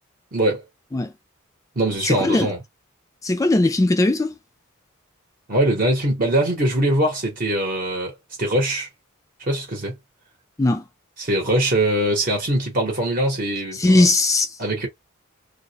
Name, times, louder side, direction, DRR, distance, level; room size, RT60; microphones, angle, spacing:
voice 1, 0.3-0.6 1.8-2.6 5.5-8.1 8.4-8.9 9.4-10.0 11.2-14.0 14.6-14.9, right 1 dB, 40° right, 0.8 m, -22 dB
voice 2, 2.0-2.5 3.2-4.3 10.6-10.8 13.8-14.5, left 2 dB, 15° left, 0.3 m, -18 dB
2.3 x 2.0 x 2.7 m
head